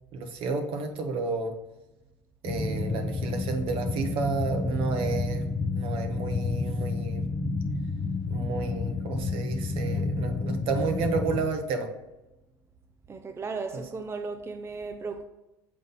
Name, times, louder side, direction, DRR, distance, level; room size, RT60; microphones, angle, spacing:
voice 1, 0.1-1.5 2.4-5.4 5.7-7.3 8.3-11.9, right 4 dB, 60° right, 1.1 m, -31 dB
sound 1, 2.5-11.4, left 3 dB, 20° left, 0.7 m, -30 dB
voice 2, 13.1-15.2, right 4 dB, 25° right, 0.5 m, -35 dB
7.6 x 4.0 x 3.9 m
hypercardioid pair, 80°, 10 cm